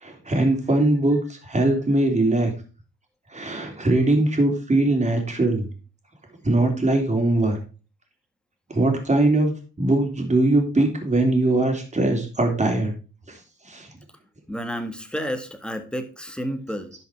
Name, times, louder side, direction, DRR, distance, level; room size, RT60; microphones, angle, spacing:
voice 1, 0.0-2.5 3.3-5.7 6.4-7.6 8.7-12.9 13.3-13.4 13.6-13.9, right 2 dB, 25° right, 3 dB, 3.4 m, -21 dB
voice 2, 14.5-16.9, equal, 5° left, 7 dB, 1.7 m, -31 dB
11.0 x 5.7 x 4.7 m, 0.35 s
cardioid pair, 90°, 30 cm